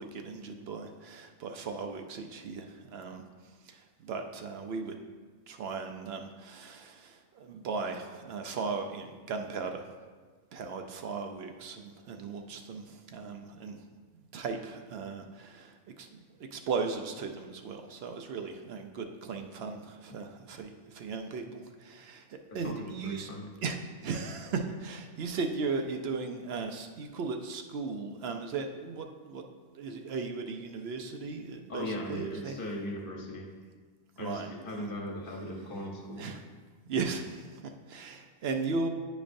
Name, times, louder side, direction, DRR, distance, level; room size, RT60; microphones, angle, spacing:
voice 1, 0.0-5.0 5.5-9.9 10.5-13.8 14.3-23.3 23.6-23.8 24.0-29.5 29.7-32.6 34.2-34.9 36.1-36.4 36.9-38.9, right 4 dB, 65° right, 5 dB, 0.7 m, -37 dB
voice 2, 22.5-23.5 31.7-33.5 34.2-36.3, left 1 dB, 45° left, 0 dB, 1.1 m, -38 dB
9.6 x 5.1 x 2.6 m, 1.5 s
omnidirectional pair, 1.2 m